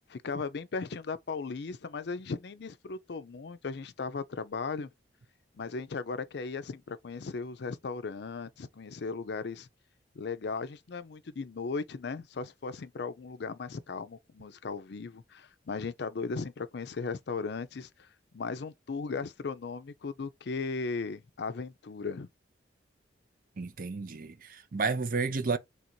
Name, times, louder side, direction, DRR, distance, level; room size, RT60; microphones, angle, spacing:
voice 1, 0.1-4.9 5.5-9.7 10.2-18.1 18.3-22.3, left 4 dB, 60° left, 0.5 m, -37 dB
voice 2, 23.6-25.6, right 4 dB, 50° right, 0.5 m, -31 dB
3.4 x 2.6 x 4.4 m
head